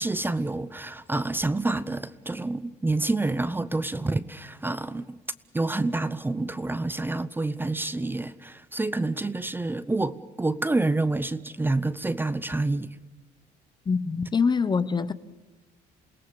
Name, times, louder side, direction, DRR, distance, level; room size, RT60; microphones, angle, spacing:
voice 1, 0.0-5.2 5.5-12.9, right 2 dB, 10° right, 0.8 m, -28 dB
voice 2, 13.9-15.1, left 5 dB, 25° left, 0.9 m, -24 dB
28.5 x 18.0 x 7.0 m
cardioid pair, 110°, 17 cm